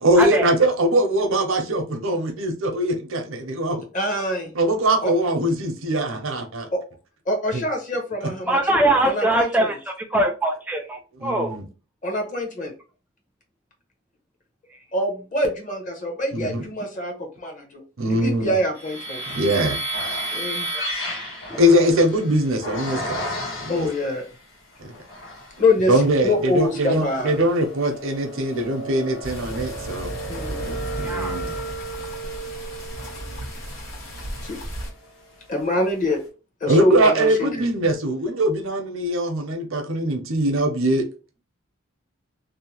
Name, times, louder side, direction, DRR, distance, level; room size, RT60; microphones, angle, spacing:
voice 1, 0.0-3.9 4.5-6.7 7.5-7.6 8.2-8.3 11.2-11.6 16.3-16.6 18.0-18.5 19.3-19.8 21.6-23.2 23.6-23.9 24.8-24.9 25.9-30.1 30.9-31.5 36.7-41.1, right 1 dB, 75° right, 0.7 m, -21 dB
voice 2, 3.9-4.5 5.0-5.1 6.7-6.8 7.3-9.7 12.0-12.7 14.9-19.2 20.3-20.7 23.7-24.3 25.6-25.9 26.2-27.3 30.3-30.8 34.4-34.6 35.5-36.2 36.6-37.7, left 1 dB, 40° left, 0.8 m, -25 dB
voice 3, 8.5-11.6 20.7-20.8 21.5-21.6 31.0-31.4, right 1 dB, 5° right, 0.3 m, -22 dB
sound 1, 18.7-24.2 24.8-25.6 26.1-35.3, right 1 dB, 65° left, 1.1 m, -33 dB
sound 2, 29.2-34.9, equal, 90° left, 1.5 m, -34 dB
2.7 x 2.1 x 2.9 m
head